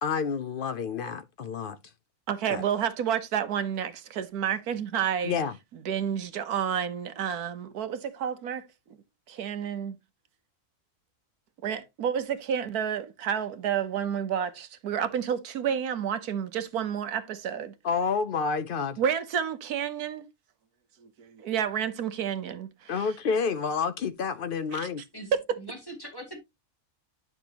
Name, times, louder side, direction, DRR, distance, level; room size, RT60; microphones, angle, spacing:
voice 1, 0.0-1.8 2.5-2.6 5.2-5.5 17.8-19.0 22.9-25.0, left 5 dB, 90° left, 0.4 m, -29 dB
voice 2, 2.3-5.4 5.8-9.0 9.3-10.0 11.6-17.7 19.0-20.3 21.0-23.1 24.7-24.9 25.3-25.4, right 8 dB, 80° right, 1.4 m, -30 dB
voice 3, 25.1-26.4, right 1 dB, 15° left, 2.5 m, -42 dB
10.0 x 6.0 x 2.9 m
omnidirectional pair, 1.6 m